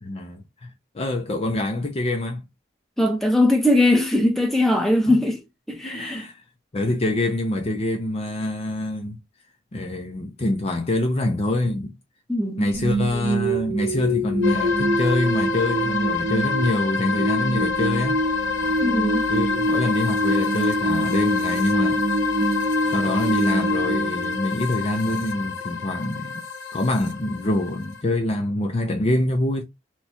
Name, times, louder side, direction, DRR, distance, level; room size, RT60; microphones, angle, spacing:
voice 1, 0.0-2.4 5.1-5.2 5.8-6.4 6.7-9.2 9.7-11.9 12.6-18.2 19.3-22.0 22.9-26.4 26.7-29.6, left 1 dB, 30° left, 0.5 m, -25 dB
voice 2, 3.0-5.4 5.7-6.3 12.3-12.7 18.8-19.3, left 1 dB, ahead, 0.8 m, -20 dB
sound 1, 12.7-24.9, right 1 dB, 70° right, 0.8 m, -25 dB
sound 2, 14.4-28.0, left 5 dB, 80° left, 0.8 m, -28 dB
3.0 x 2.3 x 4.1 m
head